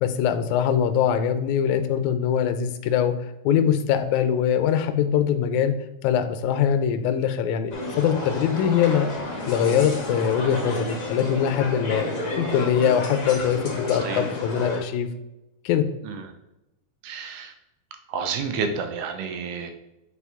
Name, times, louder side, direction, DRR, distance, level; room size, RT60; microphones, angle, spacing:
voice 1, 0.0-3.1 3.5-5.7 6.0-9.1 9.5-12.1 12.4-15.1 15.7-15.9, left 8 dB, 75° left, 8 dB, 1.8 m, -22 dB
sound 1, 7.7-14.8, left 1 dB, 45° left, 1.0 m, -31 dB
voice 2, 17.0-17.5 18.1-19.7, right 5 dB, 80° right, 6 dB, 2.2 m, -30 dB
8.4 x 4.5 x 3.5 m, 0.91 s
omnidirectional pair, 3.8 m